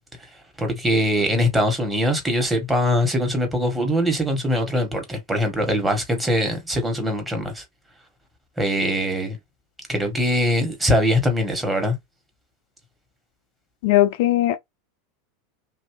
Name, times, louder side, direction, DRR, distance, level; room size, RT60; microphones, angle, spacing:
voice 1, 0.6-7.6 8.6-9.4 9.9-11.9, equal, 10° right, 1.4 m, -22 dB
voice 2, 13.8-14.6, left 14 dB, 65° left, 0.5 m, -18 dB
2.8 x 2.7 x 3.1 m
hypercardioid pair, 95°, 0 cm